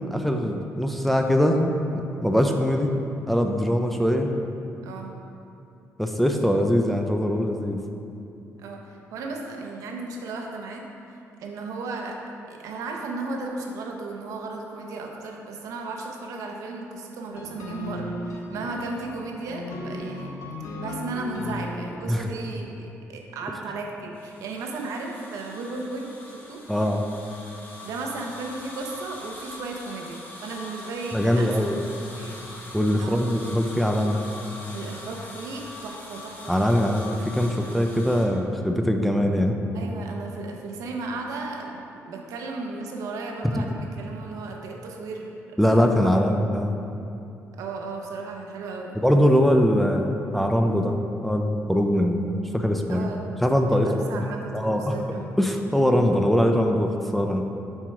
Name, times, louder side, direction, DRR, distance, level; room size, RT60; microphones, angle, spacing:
voice 1, 0.0-2.9 3.3-4.3 6.0-7.8 22.1-22.2 26.7-27.0 31.1-31.9 32.7-34.2 36.5-39.6 43.6-43.8 45.6-46.8 49.0-51.0 51.2-53.1 53.4-54.2 54.5-54.9 55.4-57.4, equal, ahead, 3 dB, 0.4 m, -22 dB
voice 2, 9.1-10.9 11.4-12.2 12.5-20.4 20.8-26.6 27.8-31.7 32.2-32.4 33.0-33.2 34.7-37.0 39.7-45.6 46.0-46.2 47.5-48.9 52.9-53.2 53.7-55.3, right 3 dB, 80° right, 1 dB, 0.9 m, -35 dB
sound 1, 17.3-22.7, left 1 dB, 75° left, 0.9 m, -36 dB
sound 2, 24.1-38.2, left 2 dB, 30° left, 1.2 m, -42 dB
7.6 x 4.6 x 4.7 m, 2.7 s
cardioid pair, 160°, 6 cm